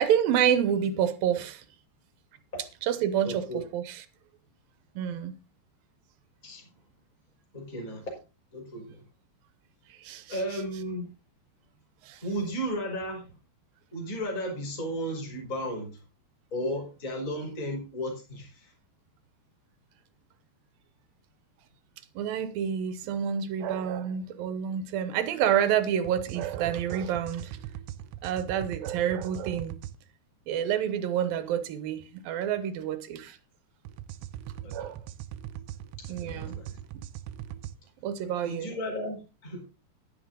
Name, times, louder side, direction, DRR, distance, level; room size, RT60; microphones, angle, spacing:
voice 1, 0.0-1.6 2.8-4.0 5.0-5.4 10.0-10.4 12.0-12.2 22.2-27.6 28.2-29.7 30.5-33.4 34.7-35.0 36.1-36.6 38.0-38.7, right 9 dB, 70° right, 2.5 m, -28 dB
voice 2, 3.2-3.6 6.4-6.6 7.5-8.2 8.5-9.0 10.3-11.1 12.2-13.3 13.9-16.0 16.5-18.7 34.6-34.8 36.0-36.7 38.4-39.6, equal, 20° left, 4.6 m, -34 dB
sound 1, 26.0-30.0 33.8-37.7, right 11 dB, 90° right, 2.9 m, -41 dB
11.0 x 11.0 x 3.8 m
omnidirectional pair, 4.9 m